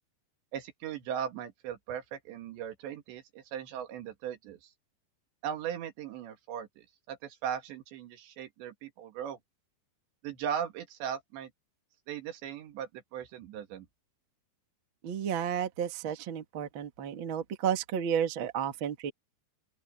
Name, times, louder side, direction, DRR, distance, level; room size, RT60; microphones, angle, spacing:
voice 1, 0.5-4.7 5.4-9.4 10.2-11.5 12.1-13.9, right 9 dB, 80° right, 4.2 m, -38 dB
voice 2, 15.0-19.1, right 8 dB, 50° right, 1.4 m, -32 dB
open air
omnidirectional pair, 5.0 m